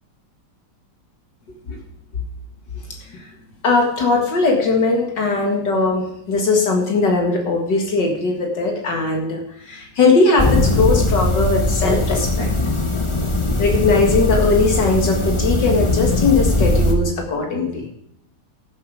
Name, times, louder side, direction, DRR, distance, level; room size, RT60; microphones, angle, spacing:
voice 1, 3.6-12.5 13.6-17.9, left 3 dB, 75° left, 1 dB, 2.5 m, -19 dB
sound 1, 10.4-16.9, left 1 dB, 20° left, 1.1 m, -20 dB
15.5 x 7.3 x 4.9 m, 0.74 s
omnidirectional pair, 1.9 m